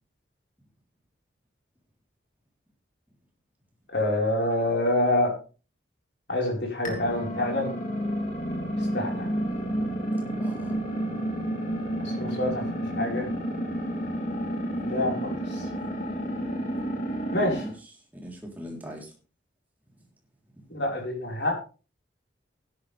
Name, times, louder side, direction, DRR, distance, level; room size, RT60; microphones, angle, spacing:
voice 1, 3.9-5.3 6.3-7.7 8.9-9.3 12.0-12.6 13.0-13.3 14.8-15.7 17.3-17.6 20.7-21.5, left 1 dB, 60° left, 5.0 m, -26 dB
sound 1, 6.8-17.7, equal, 40° left, 3.1 m, -30 dB
voice 2, 10.4-10.8 15.7-15.9 17.5-19.1 20.5-20.8, equal, 10° right, 3.9 m, -42 dB
16.5 x 10.5 x 3.5 m
head